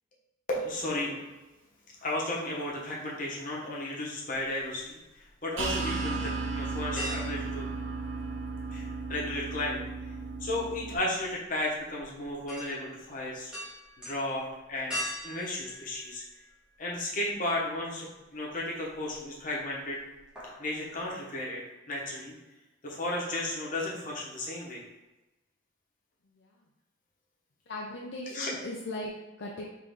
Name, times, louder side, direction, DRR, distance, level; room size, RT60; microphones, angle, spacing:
voice 1, 0.5-1.2 2.0-7.7 8.7-9.8 10.4-13.5 14.0-15.0 15.2-16.2 16.8-20.0 20.6-22.3 22.8-24.8 28.3-28.5, left 1 dB, 40° left, -4 dB, 1.0 m, -34 dB
sound 1, 5.1-5.3 5.8-5.9 7.0-8.7 8.9-16.9 17.3-17.4 18.8-19.4 19.7-19.9 20.1-20.7 21.0-21.1, equal, 5° right, 1.2 m, -42 dB
sound 2, 5.6-11.0, right 3 dB, 65° right, 0.5 m, -34 dB
voice 2, 27.7-29.6, left 1 dB, 55° left, -2 dB, 0.5 m, -38 dB
3.8 x 3.3 x 3.5 m, 1.1 s
head